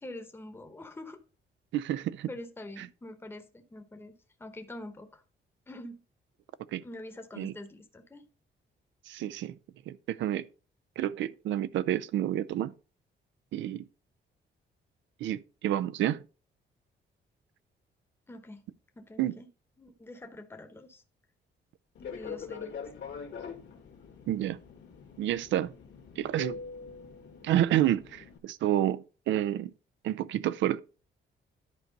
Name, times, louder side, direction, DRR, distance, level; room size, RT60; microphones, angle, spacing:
voice 1, 0.0-1.2 2.3-5.2 5.7-6.0 6.8-8.3 18.3-18.6 19.0-19.5 19.8-21.0 22.0-22.7, left 1 dB, 10° left, 1.0 m, -45 dB
voice 2, 1.7-2.3 6.7-6.8 7.4-7.5 9.1-9.5 9.9-10.4 11.0-12.7 13.5-13.9 15.2-16.2 19.2-19.4 24.3-24.6 25.2-25.7 26.2-26.6 27.4-29.7 30.0-30.8, right 12 dB, 80° right, 0.5 m, -29 dB
Fixed-wing aircraft airplane, 21.9-28.4, left 6 dB, 70° left, 1.8 m, -43 dB
11.0 x 4.6 x 4.0 m
cardioid pair, 105°, 19 cm